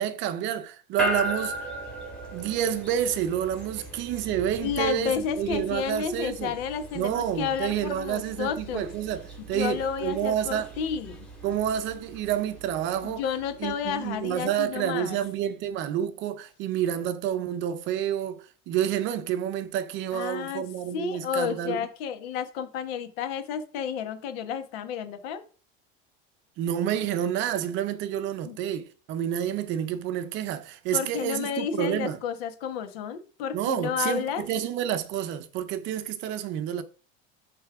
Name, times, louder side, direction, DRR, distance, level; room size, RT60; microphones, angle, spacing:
voice 1, 0.0-1.6 2.3-6.5 6.9-10.7 11.4-13.2 13.6-21.9 26.6-32.2 33.5-36.8, right 10 dB, 40° right, 0.6 m, -29 dB
sound 1, 1.0-15.3, right 1 dB, 5° left, 1.9 m, -38 dB
voice 2, 4.6-8.9 9.5-11.3 13.0-15.2 20.1-20.6 20.9-25.4 28.4-28.6 30.9-34.4, left 7 dB, 80° left, 1.3 m, -31 dB
7.0 x 3.3 x 5.9 m
cardioid pair, 175°, 30 cm